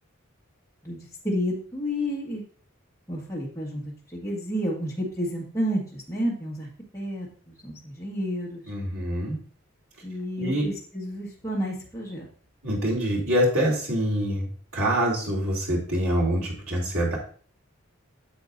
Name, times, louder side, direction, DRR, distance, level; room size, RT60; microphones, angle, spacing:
voice 1, 0.8-2.4 3.1-3.8 4.1-6.7 6.9-8.6 10.0-12.3, equal, 15° left, -5 dB, 1.7 m, -30 dB
voice 2, 8.7-9.4 10.4-10.7 12.6-17.2, equal, 85° right, -3 dB, 3.0 m, -25 dB
8.5 x 7.3 x 2.6 m, 0.44 s
head